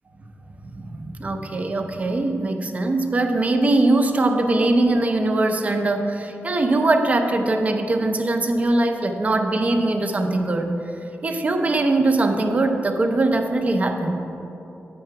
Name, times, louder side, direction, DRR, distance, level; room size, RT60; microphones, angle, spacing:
voice 1, 0.6-10.7 11.2-14.3, right 2 dB, 35° right, 5 dB, 0.6 m, -21 dB
8.6 x 5.7 x 4.6 m, 3.0 s
wide cardioid pair, 130°, 4 cm